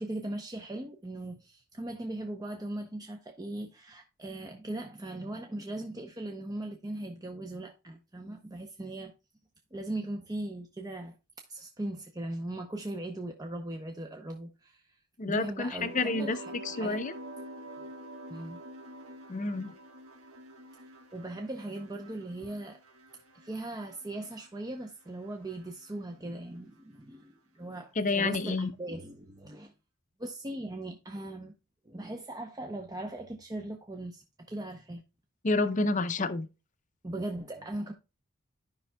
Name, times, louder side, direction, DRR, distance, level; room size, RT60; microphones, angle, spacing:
voice 1, 0.0-9.1 9.7-11.2 11.5-15.0 15.3-17.0 18.3-18.6 21.1-22.8 23.3-29.7 30.2-31.5 31.9-35.0 37.0-37.9, right 1 dB, 15° right, 0.6 m, -39 dB
voice 2, 15.2-16.4 16.6-17.1 19.3-19.7 28.0-28.7 35.4-36.5, left 3 dB, 35° left, 0.6 m, -29 dB
sound 1, 15.8-24.9 25.2-25.9, right 1 dB, 70° right, 1.3 m, -47 dB
13.0 x 5.5 x 2.2 m
head